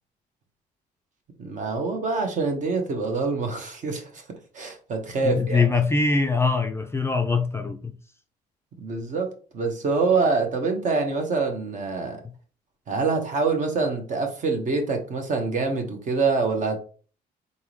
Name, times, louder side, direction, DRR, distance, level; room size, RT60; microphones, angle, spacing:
voice 1, 1.4-4.2 4.5-5.7 8.8-9.3 9.5-12.2 12.9-16.8, right 4 dB, 50° right, 1.3 m, -25 dB
voice 2, 5.2-7.9, left 4 dB, 15° left, 0.4 m, -23 dB
4.0 x 3.6 x 3.1 m
cardioid pair, 110°, 17 cm